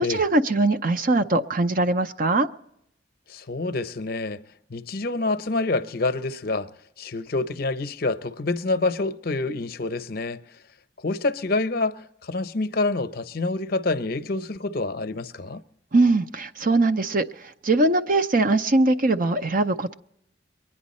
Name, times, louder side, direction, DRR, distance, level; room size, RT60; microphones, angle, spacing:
voice 1, 0.0-2.5 15.9-19.9, right 2 dB, 50° right, 0.6 m, -21 dB
voice 2, 3.3-4.4 4.7-6.7 7.0-10.4 11.0-15.6, left 3 dB, 55° left, 0.7 m, -27 dB
23.5 x 10.0 x 4.2 m
head